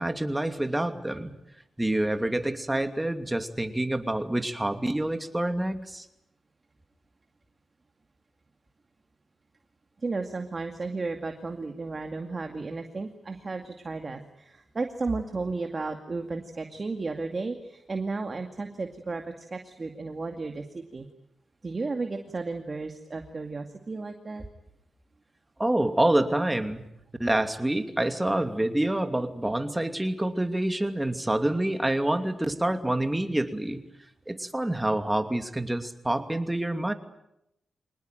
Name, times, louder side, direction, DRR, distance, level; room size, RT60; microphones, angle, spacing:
voice 1, 0.0-1.3 1.8-6.1 25.6-26.8 27.2-33.8 34.3-36.9, right 1 dB, 10° right, 7 dB, 2.7 m, -27 dB
voice 2, 10.0-21.1 21.6-24.4, right 3 dB, 35° right, 5 dB, 2.2 m, -34 dB
25.5 x 19.5 x 9.3 m, 0.81 s
cardioid pair, 85°, 0 cm